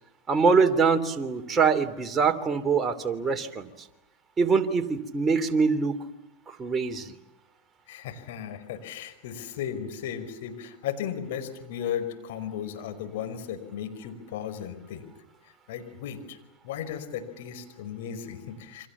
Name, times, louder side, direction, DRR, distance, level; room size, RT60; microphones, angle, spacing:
voice 1, 0.3-3.7 4.4-6.0 6.5-7.1, right 5 dB, 25° right, 5 dB, 3.0 m, -24 dB
voice 2, 7.9-15.0 15.7-16.4 16.6-18.9, left 9 dB, 70° left, 8 dB, 5.2 m, -35 dB
29.0 x 25.5 x 7.3 m, 0.94 s
hypercardioid pair, 95°, 0 cm